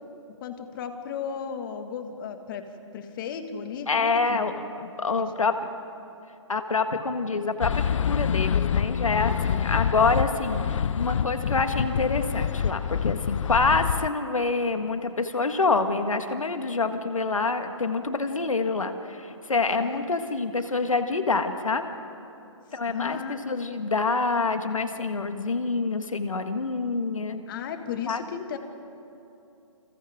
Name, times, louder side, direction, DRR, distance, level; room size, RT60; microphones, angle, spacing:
voice 1, 0.0-2.7 2.9-4.5 5.2-5.3 19.7-20.1 22.9-23.5 27.5-28.6, left 7 dB, 40° left, 6 dB, 2.1 m, -35 dB
voice 2, 3.9-5.5 6.5-21.8 22.7-27.4 28.1-28.2, left 4 dB, 85° left, 7 dB, 1.8 m, -26 dB
sound 1, 7.6-14.1, left 8 dB, 70° left, 0.4 m, -26 dB
29.0 x 27.0 x 3.8 m, 2.7 s
hypercardioid pair, 140°, 17 cm